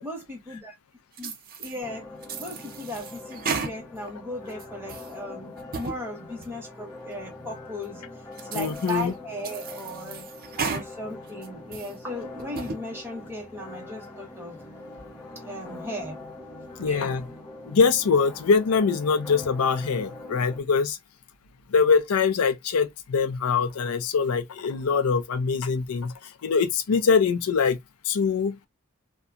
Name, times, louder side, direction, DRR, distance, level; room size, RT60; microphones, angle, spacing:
voice 1, 0.0-0.7 1.2-1.3 1.6-2.0 2.4-8.0 8.4-10.3 10.6-14.6 15.4-16.2 16.8-17.2, left 1 dB, 10° right, 1.0 m, -37 dB
sound 1, 1.2-1.8 2.2-4.1 4.5-5.1 5.6-6.0 6.4-6.5 7.1-7.2 7.8-7.9 8.4-9.1 9.4-10.9 11.3-11.9 12.4-12.8, right 5 dB, 40° right, 0.5 m, -34 dB
sound 2, 1.8-20.6, left 2 dB, 15° left, 0.8 m, -43 dB
voice 2, 8.5-9.1 16.8-17.3 17.7-21.0 21.7-26.1 26.4-27.8 28.1-28.6, left 5 dB, 90° left, 0.5 m, -23 dB
2.7 x 2.3 x 2.4 m
head